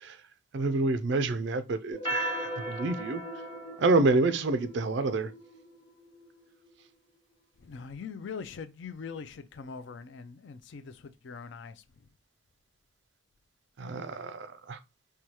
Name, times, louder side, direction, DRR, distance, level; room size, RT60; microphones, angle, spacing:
voice 1, 0.5-3.2 3.8-5.3 13.8-14.8, right 3 dB, 55° right, 0.4 m, -28 dB
sound 1, 1.9-6.7, right 1 dB, 25° left, 1.0 m, -37 dB
voice 2, 7.6-12.1, left 5 dB, 55° left, 0.4 m, -42 dB
4.6 x 2.3 x 2.8 m
head